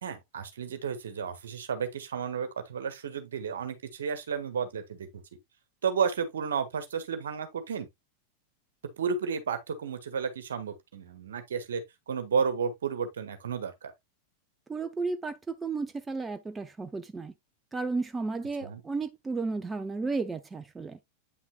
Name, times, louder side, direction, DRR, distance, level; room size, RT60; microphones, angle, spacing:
voice 1, 0.0-5.2 5.8-7.9 9.0-13.9 18.6-18.8, right 6 dB, 65° right, 1.5 m, -32 dB
voice 2, 14.7-17.3 17.7-21.0, right 3 dB, 15° right, 0.7 m, -33 dB
8.8 x 6.0 x 2.2 m
figure-of-eight pair, 90°, 0 cm